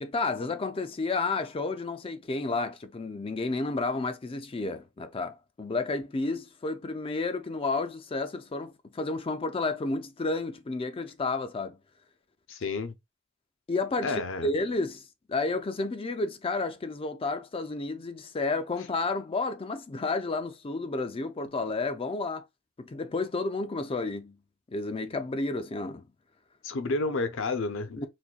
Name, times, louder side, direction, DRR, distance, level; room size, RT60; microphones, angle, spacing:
voice 1, 0.0-11.8 13.7-14.2 14.4-22.4 22.8-24.4 24.7-26.0 28.0-28.1, left 3 dB, 25° left, 0.4 m, -31 dB
voice 2, 12.5-12.9 14.0-14.5 26.6-28.0, left 3 dB, 60° left, 0.7 m, -30 dB
4.1 x 2.6 x 2.2 m
head